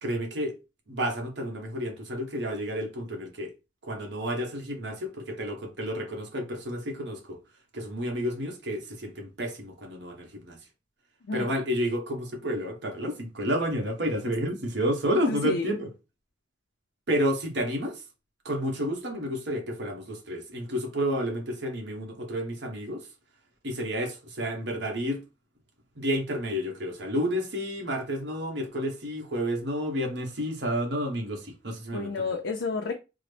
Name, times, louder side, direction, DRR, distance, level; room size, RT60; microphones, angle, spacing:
voice 1, 0.0-0.6 0.9-3.5 3.8-7.4 7.7-10.6 11.3-15.9 17.1-18.0 18.4-23.1 23.6-25.2 26.0-32.3, equal, 70° right, 1.0 m, -30 dB
voice 2, 15.3-15.8 31.9-32.9, left 3 dB, 75° left, 0.4 m, -30 dB
3.8 x 2.0 x 3.3 m
head